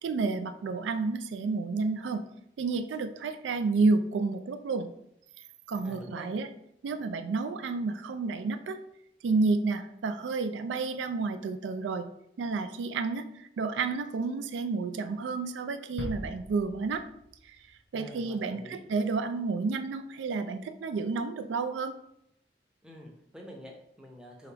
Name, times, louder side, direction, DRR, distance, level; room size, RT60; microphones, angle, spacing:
voice 1, 0.0-2.2 2.6-4.9 5.7-6.5 6.8-8.8 9.2-12.1 12.4-17.0 17.5-17.6 17.9-21.9, right 4 dB, 90° right, 9 dB, 0.3 m, -30 dB
voice 2, 5.7-6.3 17.9-18.8 22.8-24.5, equal, 5° right, -1 dB, 0.6 m, -47 dB
sound 1, 16.0-17.9 18.3-18.4, left 1 dB, 75° left, 0.7 m, -42 dB
4.7 x 2.9 x 3.2 m, 0.77 s
head